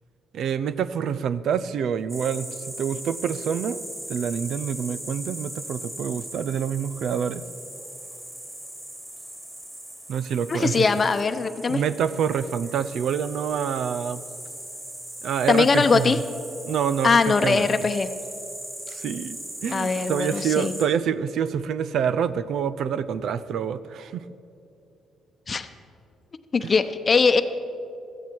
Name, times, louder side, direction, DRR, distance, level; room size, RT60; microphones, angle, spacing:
voice 1, 0.3-3.8 4.1-7.4 10.1-10.9 11.7-14.2 15.2-16.1 16.7-17.9 18.9-24.2 26.6-26.7, right 8 dB, 70° right, 14 dB, 0.5 m, -27 dB
sound 1, 2.1-20.9, right 1 dB, 15° right, 3.4 m, -39 dB
voice 2, 10.5-11.8 15.5-16.2 17.0-18.1 19.7-20.7 25.5-25.7 26.5-27.4, left 4 dB, 35° left, 10 dB, 0.8 m, -21 dB
16.0 x 14.0 x 4.7 m, 2.7 s
cardioid pair, 90°, 0 cm